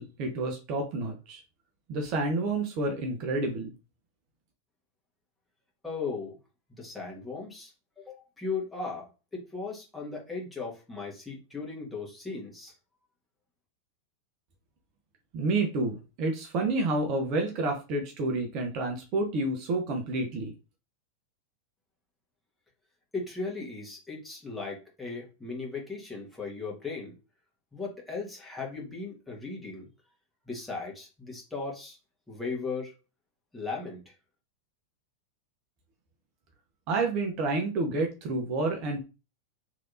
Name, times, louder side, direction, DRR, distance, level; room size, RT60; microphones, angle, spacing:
voice 1, 0.0-1.4 1.9-3.7 15.3-20.5 36.9-39.1, right 2 dB, 40° right, 3 dB, 0.7 m, -29 dB
voice 2, 5.8-6.4 6.7-12.7 23.1-27.1 27.7-29.9 30.5-32.0 32.3-32.9 33.5-34.2, left 4 dB, 5° left, -3 dB, 1.4 m, -37 dB
3.2 x 2.9 x 2.6 m, 0.30 s
figure-of-eight pair, 90°, 0 cm